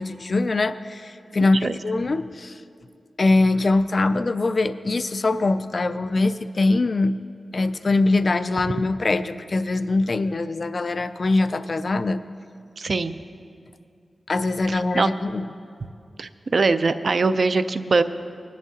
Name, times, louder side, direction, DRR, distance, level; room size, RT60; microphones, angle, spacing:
voice 1, 0.0-2.6 3.2-7.1 7.5-12.2 14.3-15.5, left 2 dB, 45° left, 12 dB, 0.3 m, -22 dB
voice 2, 1.4-1.8 12.8-13.2 14.7-15.1 16.2-18.0, right 3 dB, 50° right, 11 dB, 0.4 m, -22 dB
20.5 x 10.5 x 2.7 m, 2.3 s
wide cardioid pair, 125°, 0 cm